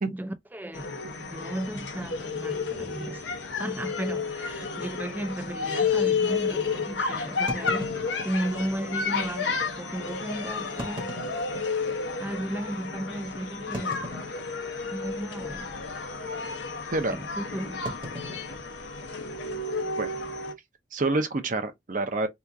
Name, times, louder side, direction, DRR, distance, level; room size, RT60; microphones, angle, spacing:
voice 1, 0.1-3.3 3.6-11.2 12.2-14.1 14.9-15.7 17.1-17.9, right 1 dB, 10° right, 0.4 m, -35 dB
sound 1, 0.7-20.5, left 4 dB, 75° left, 0.8 m, -31 dB
sound 2, 2.7-2.9 3.7-3.8 4.1-4.2 4.8-4.9 7.5-8.7 9.5-9.6 10.6-12.1 12.6-12.7 13.7-14.8 15.1-15.5 15.7-16.0 17.8-19.5, equal, 25° right, 1.0 m, -40 dB
voice 2, 20.9-22.3, right 2 dB, 45° right, 0.7 m, -27 dB
2.9 x 2.4 x 3.4 m
head